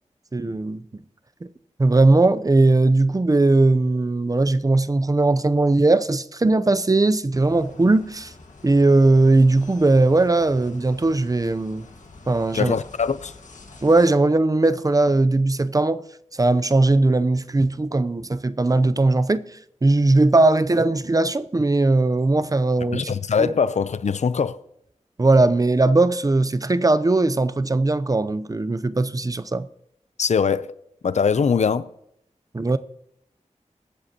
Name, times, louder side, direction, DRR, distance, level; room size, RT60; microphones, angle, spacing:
voice 1, 0.3-0.8 1.8-8.3 8.6-11.8 12.3-12.7 13.8-16.0 16.3-19.4 19.8-23.1 23.4-23.5 25.2-29.7 32.5-32.8, right 2 dB, 30° right, 0.6 m, -19 dB
sound 1, 7.3-14.1, left 3 dB, 80° left, 1.7 m, -46 dB
voice 2, 12.5-13.3 22.9-24.6 30.2-30.7 31.0-31.9, left 6 dB, 65° left, 0.5 m, -22 dB
22.0 x 7.9 x 2.8 m
wide cardioid pair, 75°, 13 cm